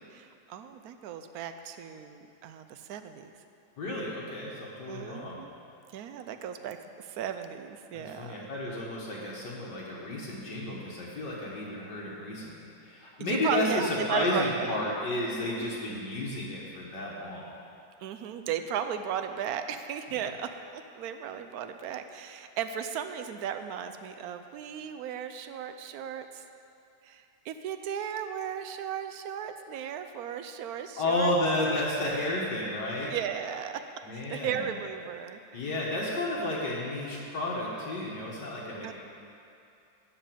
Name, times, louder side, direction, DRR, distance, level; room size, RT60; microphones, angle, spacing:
voice 1, 0.1-3.3 4.9-5.5 5.9-8.5 13.2-14.8 15.4-16.0 18.0-26.4 27.0-31.3 33.1-33.7 34.1-35.7 38.8-38.9, right 8 dB, 65° right, 8 dB, 1.0 m, -36 dB
voice 2, 3.8-5.4 7.9-17.5 31.0-33.1 34.0-34.7 35.5-38.9, left 1 dB, 65° left, -4 dB, 2.1 m, -32 dB
12.5 x 5.5 x 8.5 m, 2.7 s
omnidirectional pair, 2.0 m